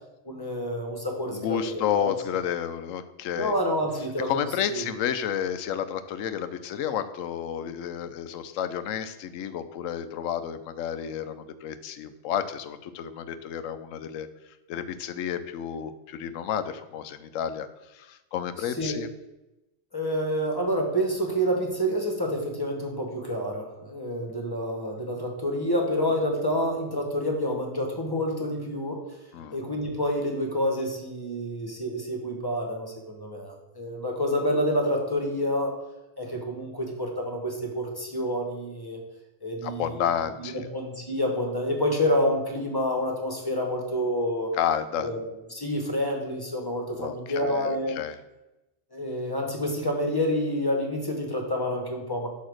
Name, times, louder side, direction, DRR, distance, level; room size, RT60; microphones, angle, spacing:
voice 1, 0.2-2.1 3.3-4.8 18.6-19.0 19.9-29.0 29.5-35.7 36.2-39.0 39.4-40.1 40.4-44.5 45.0-48.0 48.9-52.3, equal, 20° left, 1 dB, 1.1 m, -28 dB
voice 2, 1.3-3.5 4.2-14.3 14.7-17.7 17.9-19.1 29.3-29.6 39.6-40.6 44.5-45.1 47.0-48.1, left 9 dB, 80° left, 11 dB, 1.0 m, -31 dB
8.4 x 2.9 x 6.3 m, 0.98 s
omnidirectional pair, 1.3 m